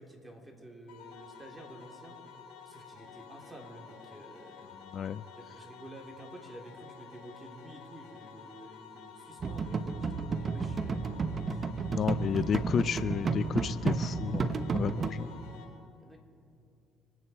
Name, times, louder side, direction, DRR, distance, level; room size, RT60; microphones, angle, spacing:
voice 1, 0.0-2.2 2.7-4.7 5.3-11.2 11.5-11.6 12.0-12.6 16.0-16.2, right 1 dB, 10° right, 1 dB, 3.6 m, -50 dB
sound 1, 0.9-15.6, left 6 dB, 75° left, 3.8 m, -51 dB
sound 2, 9.4-15.1, right 4 dB, 45° right, 1.0 m, -32 dB
voice 2, 11.9-15.3, left 8 dB, 55° left, 16 dB, 0.3 m, -32 dB
25.5 x 9.7 x 4.5 m, 2.5 s
hypercardioid pair, 55°, 0 cm